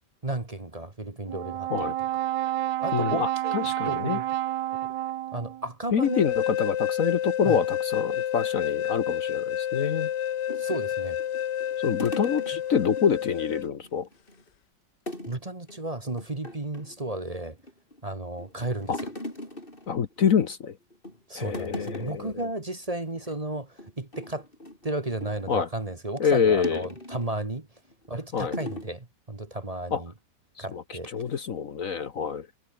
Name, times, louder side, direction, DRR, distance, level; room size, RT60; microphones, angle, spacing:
voice 1, 0.2-1.7 2.8-4.2 4.8-4.9 5.3-6.2 7.4-7.6 10.6-11.2 15.3-17.6 18.0-19.1 21.3-24.5 24.8-27.7 28.1-30.1 30.6-31.1, right 2 dB, 20° right, 1.7 m, -33 dB
Brass instrument, 1.3-5.7, right 14 dB, 80° right, 1.4 m, -29 dB
voice 2, 2.9-4.2 5.9-10.1 11.8-14.1 18.9-19.0 19.9-20.8 21.3-22.3 25.5-25.7 26.2-26.9 28.3-28.6 29.9-30.0 30.6-32.5, left 7 dB, 55° left, 1.4 m, -26 dB
sound 1, 6.0-13.7, left 10 dB, 80° left, 1.7 m, -29 dB
sound 2, 10.5-13.1 13.4-13.5 13.8-14.5 15.1-15.4 15.7-15.8 16.2-17.0 17.5-18.1 18.4-20.5 20.9-21.2 21.5-22.3 22.7-22.8 23.1-23.4 23.8-25.6 26.6-27.3 27.9-28.1 28.5-28.9, left 1 dB, 30° left, 7.6 m, -39 dB
omnidirectional pair, 1.9 m